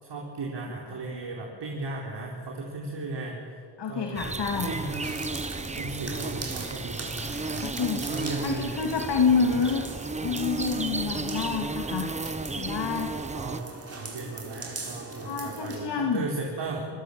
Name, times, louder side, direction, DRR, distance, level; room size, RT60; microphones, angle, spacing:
voice 1, 0.0-3.6 3.9-5.3 5.6-8.8 9.3-9.5 13.3-13.7 14.0-16.9, right 3 dB, 65° right, -1 dB, 4.6 m, -36 dB
voice 2, 3.8-4.9 7.6-8.2 8.4-9.9 10.2-12.2 12.5-13.1 15.2-16.3, left 5 dB, 65° left, 2 dB, 3.0 m, -28 dB
sound 1, 4.1-13.6, right 3 dB, 15° right, 0.9 m, -34 dB
sound 2, 4.8-15.9, right 3 dB, 30° right, 4.6 m, -40 dB
28.5 x 20.5 x 8.8 m, 2.1 s
cardioid pair, 110°, 44 cm